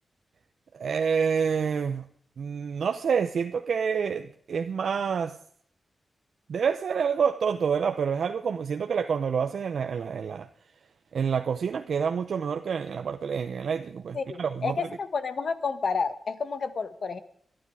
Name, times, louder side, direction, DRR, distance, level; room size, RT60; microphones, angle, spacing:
voice 1, 0.7-2.0 2.4-5.4 6.5-10.5 11.1-14.8, right 6 dB, 80° right, 0.8 m, -28 dB
voice 2, 14.1-17.2, left 5 dB, 65° left, 1.6 m, -30 dB
25.0 x 10.0 x 4.9 m
wide cardioid pair, 100°, 0 cm